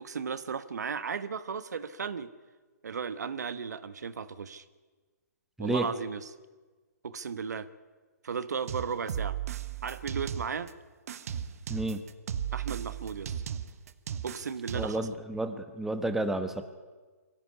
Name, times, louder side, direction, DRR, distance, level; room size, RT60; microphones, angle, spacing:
voice 1, 0.0-2.3 2.8-4.6 5.6-6.2 7.0-7.7 8.2-9.4 9.8-10.7 12.5-13.3 14.2-15.1, right 6 dB, 75° right, 14 dB, 1.4 m, -35 dB
sound 1, 8.7-10.7 11.1-15.1, right 9 dB, 55° right, 1.5 m, -36 dB
voice 2, 11.7-12.0 14.7-16.6, right 1 dB, 5° right, 8 dB, 1.3 m, -31 dB
23.0 x 16.0 x 9.7 m, 1.4 s
hypercardioid pair, 140°, 9 cm